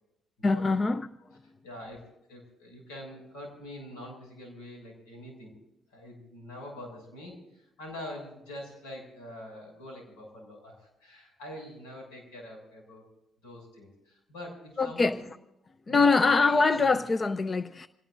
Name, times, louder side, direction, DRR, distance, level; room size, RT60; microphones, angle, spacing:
voice 1, 0.4-1.1 14.8-15.2 15.9-17.9, left 4 dB, 35° left, 0.7 m, -23 dB
voice 2, 1.6-5.5 5.9-13.0 13.4-15.2 15.9-16.2 16.8-17.0, left 1 dB, 90° left, 6.8 m, -44 dB
26.5 x 18.5 x 2.7 m
supercardioid pair, 55°, 0 cm